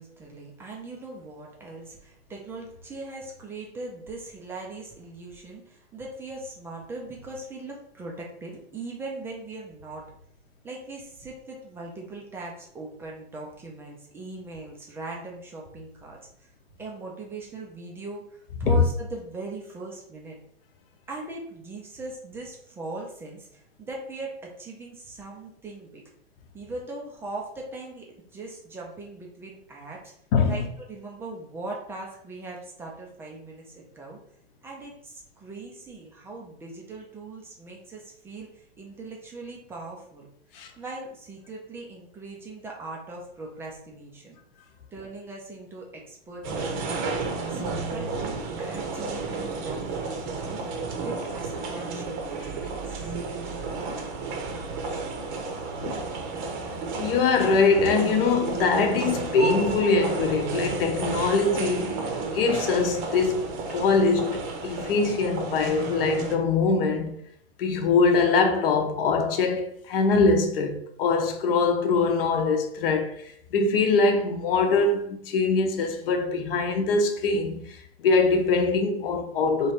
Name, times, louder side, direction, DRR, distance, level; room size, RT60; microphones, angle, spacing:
voice 1, 0.0-10.1 10.6-16.5 16.8-20.4 21.1-26.0 26.5-28.1 28.3-30.1 30.5-34.2 34.6-40.3 40.8-44.4 44.9-53.1 54.5-54.6, right 2 dB, 5° right, 0.4 m, -40 dB
sound 1, 46.4-66.4, right 4 dB, 35° right, 0.7 m, -32 dB
voice 2, 57.0-62.0 62.3-63.4 63.7-67.1 67.6-73.2 73.5-79.7, left 4 dB, 55° left, 0.8 m, -23 dB
3.2 x 2.6 x 4.2 m
hypercardioid pair, 130°, 33 cm